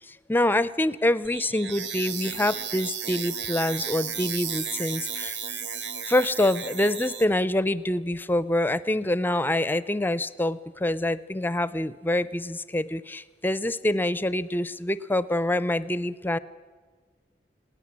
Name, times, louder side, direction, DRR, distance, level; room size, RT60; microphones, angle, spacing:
voice 1, 0.3-5.4 6.1-16.4, left 1 dB, 10° left, 16 dB, 0.5 m, -26 dB
sound 1, 1.2-7.2, right 7 dB, 85° right, 1.2 m, -34 dB
20.5 x 18.0 x 7.4 m, 1.4 s
head